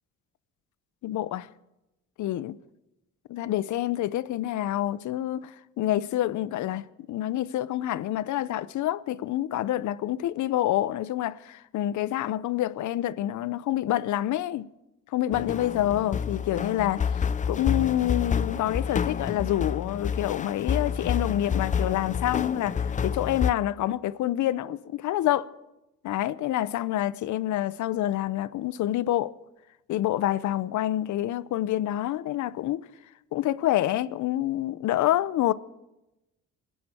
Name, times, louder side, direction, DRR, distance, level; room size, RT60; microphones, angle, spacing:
voice 1, 1.0-1.5 2.2-2.5 3.3-14.7 15.1-25.5 26.0-29.3 29.9-32.8 33.3-35.5, left 13 dB, 75° left, 0.7 m, -27 dB
sound 1, 15.3-23.5, left 7 dB, 25° left, 0.4 m, -29 dB
26.5 x 10.0 x 4.3 m
cardioid pair, 90°, 30 cm